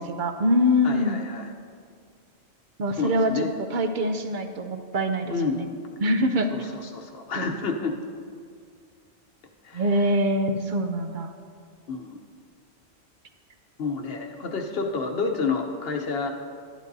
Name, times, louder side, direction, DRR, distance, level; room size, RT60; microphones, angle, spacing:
voice 1, 0.0-1.2 2.8-3.4 3.7-5.7 6.0-6.5 7.4-7.5 9.7-11.3, equal, 50° right, 7 dB, 0.7 m, -24 dB
voice 2, 0.8-1.5 3.0-3.5 5.2-5.7 6.5-7.9 9.6-10.1 11.9-12.2 13.8-16.3, left 4 dB, 60° left, 3 dB, 1.0 m, -29 dB
12.0 x 11.0 x 2.7 m, 2.2 s
omnidirectional pair, 1.2 m